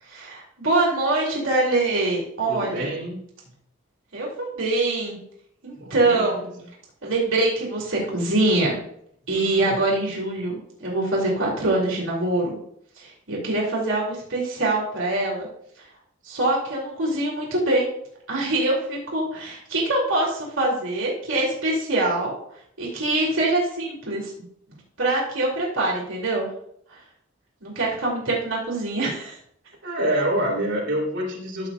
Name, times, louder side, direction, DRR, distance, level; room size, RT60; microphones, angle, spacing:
voice 1, 0.1-2.9 4.1-5.2 5.6-6.5 7.0-8.8 9.3-12.6 13.0-15.5 15.8-15.9 16.2-17.9 18.3-22.4 22.8-24.5 25.0-26.5 26.9-27.0 27.6-29.4, right 2 dB, 75° right, -4 dB, 3.1 m, -24 dB
voice 2, 2.5-3.2 5.8-6.5 9.3-9.8 29.8-31.7, right 1 dB, 55° right, -2 dB, 3.5 m, -27 dB
14.5 x 7.1 x 2.6 m, 0.67 s
head